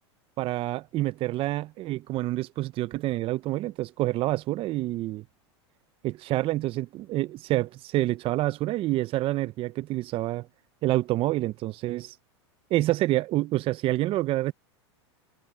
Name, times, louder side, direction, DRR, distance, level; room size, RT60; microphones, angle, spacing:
voice 1, 0.4-5.2 6.0-10.5 10.8-12.1 12.7-14.5, right 17 dB, 40° right, 0.8 m, -27 dB
hypercardioid pair, 110°, 15 cm